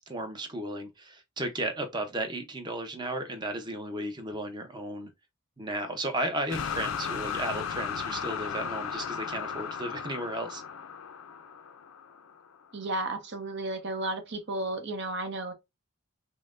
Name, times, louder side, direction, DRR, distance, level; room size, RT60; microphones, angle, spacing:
voice 1, 0.1-5.1 5.6-10.6, right 1 dB, 20° right, 0.7 m, -34 dB
sound 1, 6.5-12.5, left 7 dB, 75° left, 0.5 m, -36 dB
voice 2, 12.7-15.5, right 2 dB, 55° right, 0.8 m, -33 dB
5.5 x 2.1 x 2.5 m
head